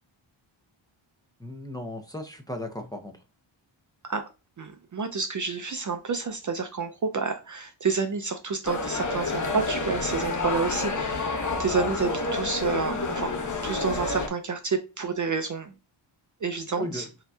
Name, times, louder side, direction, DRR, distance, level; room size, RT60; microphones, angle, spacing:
voice 1, 1.4-3.1 16.8-17.1, left 1 dB, 10° left, 0.6 m, -35 dB
voice 2, 4.6-13.4 13.6-15.7 16.4-17.1, right 5 dB, 40° right, 0.5 m, -29 dB
sound 1, 8.6-14.3, left 3 dB, 35° left, 0.9 m, -29 dB
5.6 x 2.8 x 2.3 m
wide cardioid pair, 125°, 49 cm